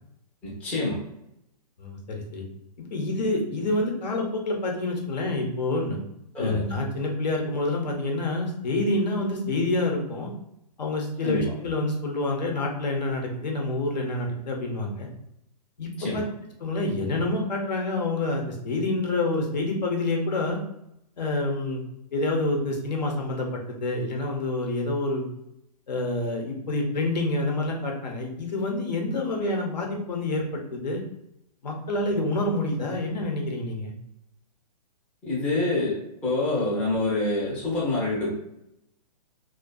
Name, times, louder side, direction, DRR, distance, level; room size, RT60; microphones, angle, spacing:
voice 1, 0.4-1.0 6.3-6.6 11.2-11.5 16.0-16.2 35.2-38.3, left 2 dB, 5° left, -7 dB, 0.4 m, -26 dB
voice 2, 1.8-2.4 2.9-6.0 6.4-10.3 10.8-15.1 15.8-16.2 16.6-20.6 21.2-21.8 22.1-25.3 25.9-31.0 31.6-33.9, left 2 dB, 85° left, 1 dB, 0.8 m, -27 dB
2.5 x 2.2 x 2.2 m, 0.82 s
hypercardioid pair, 160°, 21 cm